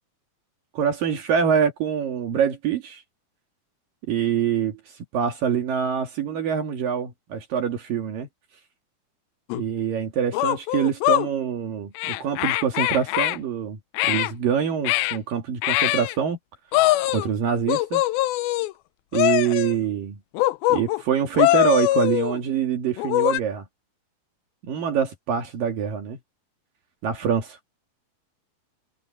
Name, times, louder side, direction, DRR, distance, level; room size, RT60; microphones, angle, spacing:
voice 1, 0.7-3.0 4.1-8.3 9.5-13.8 14.1-16.4 17.1-18.0 19.1-20.2 20.7-23.7 24.7-26.2 27.0-27.6, right 8 dB, 65° right, 3.7 m, -25 dB
sound 1, 9.5-9.6 10.3-11.3 12.0-13.4 13.9-14.3 14.9-15.2 15.6-16.2 16.7-17.3 17.7-18.7 19.1-19.8 20.4-21.0 21.4-22.4 23.0-23.4, left 17 dB, 85° left, 2.4 m, -22 dB
omnidirectional pair, 4.3 m